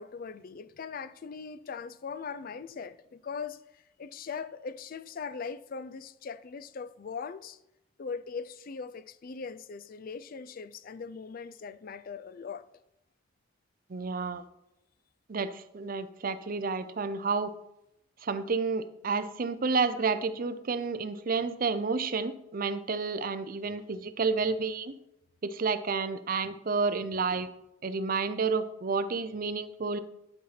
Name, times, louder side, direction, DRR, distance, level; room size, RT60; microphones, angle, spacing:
voice 1, 0.0-7.6 8.0-12.8, left 5 dB, 50° left, 0.4 m, -40 dB
voice 2, 13.9-14.4 15.3-17.5 18.2-24.9 25.4-27.5 27.8-30.0, right 4 dB, 50° right, 0.6 m, -30 dB
11.0 x 4.3 x 5.8 m
head